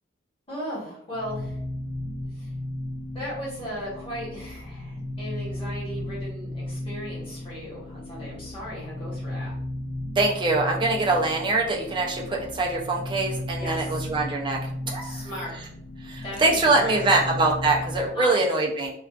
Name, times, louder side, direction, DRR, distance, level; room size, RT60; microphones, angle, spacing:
voice 1, 0.5-1.6 2.3-2.5 3.1-9.5 13.6-14.1 15.0-15.5 16.2-17.2 18.1-18.4, equal, 30° left, -7 dB, 1.1 m, -36 dB
sound 1, 1.1-18.1, left 1 dB, 80° left, 0.4 m, -35 dB
voice 2, 10.2-14.6 14.9-15.2 16.0-18.9, right 3 dB, 25° right, 0 dB, 0.4 m, -23 dB
2.3 x 2.3 x 2.3 m, 0.72 s
head